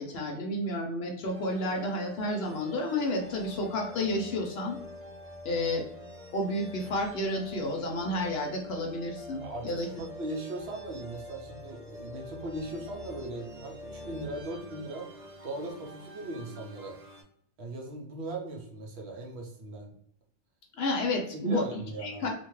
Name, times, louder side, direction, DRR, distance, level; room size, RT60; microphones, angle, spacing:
voice 1, 0.0-4.8 5.4-5.9 6.3-9.9 20.7-22.3, left 1 dB, 65° left, 1 dB, 0.8 m, -31 dB
sound 1, 1.3-17.2, left 1 dB, 40° right, 0.7 m, -45 dB
voice 2, 9.4-15.1 15.4-17.0 17.6-19.9 21.3-22.3, right 2 dB, 65° right, 0 dB, 0.9 m, -39 dB
2.7 x 2.2 x 3.0 m, 0.69 s
omnidirectional pair, 1.2 m